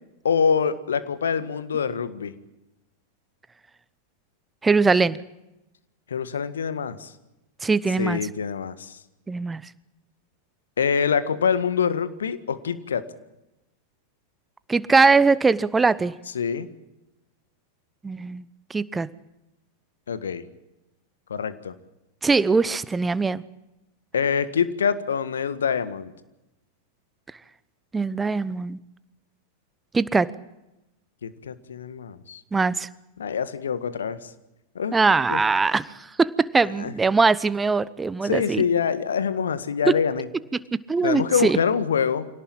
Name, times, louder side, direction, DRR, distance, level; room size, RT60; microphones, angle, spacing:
voice 1, 0.2-2.3 6.1-7.1 8.0-9.0 10.8-13.0 16.4-16.7 20.1-20.4 21.3-21.7 24.1-26.1 31.2-32.4 33.2-34.3 34.8-35.0 35.3-35.4 36.8-36.9 38.2-40.3 41.0-42.3, left 6 dB, 65° left, 13 dB, 1.7 m, -25 dB
voice 2, 4.6-5.2 7.6-8.2 9.3-9.6 14.7-16.1 18.0-18.4 18.7-19.1 22.2-23.4 27.9-28.8 29.9-30.3 32.5-32.9 34.9-38.6 39.8-39.9 40.9-41.6, right 4 dB, 10° right, 18 dB, 0.9 m, -21 dB
25.5 x 18.0 x 8.9 m, 0.96 s
figure-of-eight pair, 90°, 0 cm